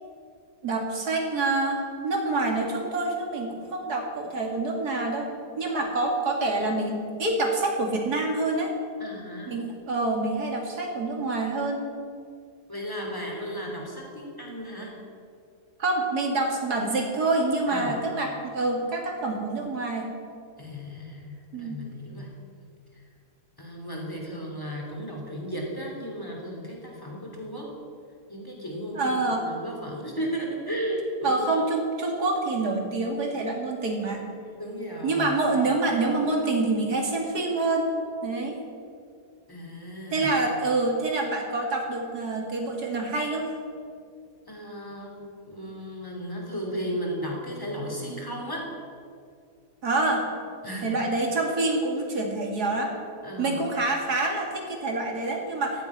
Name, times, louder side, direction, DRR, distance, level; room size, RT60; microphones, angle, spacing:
voice 1, 0.6-5.3 5.6-8.7 9.5-11.8 15.8-20.1 21.5-21.8 28.9-29.5 31.2-34.2 35.0-37.9 38.2-38.6 40.1-43.5 49.8-50.3 50.8-52.9 53.4-55.8, right 2 dB, 70° right, 1 dB, 2.8 m, -26 dB
voice 2, 9.0-9.5 12.7-15.0 17.7-18.0 20.6-22.3 23.6-27.7 28.3-31.6 34.5-35.3 39.5-40.3 44.5-48.7 50.6-50.9 53.2-53.6, equal, 15° left, -1 dB, 3.2 m, -35 dB
15.0 x 7.9 x 9.9 m, 2.3 s
omnidirectional pair, 1.7 m